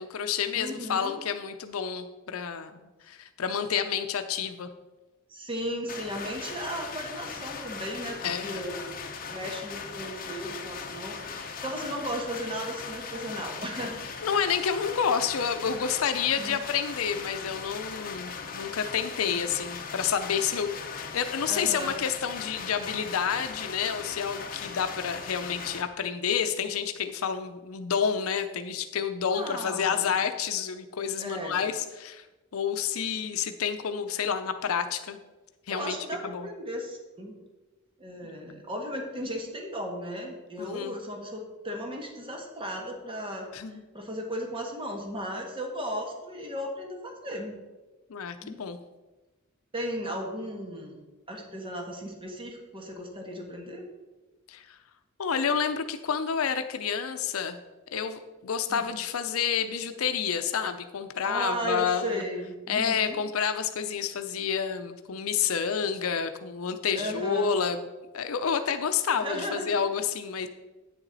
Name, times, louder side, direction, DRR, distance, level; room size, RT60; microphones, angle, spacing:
voice 1, 0.0-4.7 8.2-8.6 14.2-32.2 32.5-35.2 35.7-36.0 36.2-36.5 38.2-38.6 40.6-40.9 43.5-43.8 48.1-48.8 54.5-54.8 55.2-57.6 57.9-62.2 62.7-67.8 68.1-70.5, left 7 dB, 80° left, 8 dB, 0.6 m, -29 dB
voice 2, 0.5-1.2 5.3-8.9 9.3-14.0 16.4-16.6 19.3-19.4 21.5-21.9 29.3-30.2 31.2-31.6 35.7-37.3 38.0-43.4 43.9-47.5 48.4-48.6 49.7-53.9 58.7-58.9 61.2-63.2 66.9-67.5 69.2-69.7, equal, 25° right, 1 dB, 1.5 m, -35 dB
sound 1, 5.9-25.8, left 5 dB, 45° left, 0.8 m, -39 dB
9.1 x 7.0 x 4.0 m, 1.2 s
head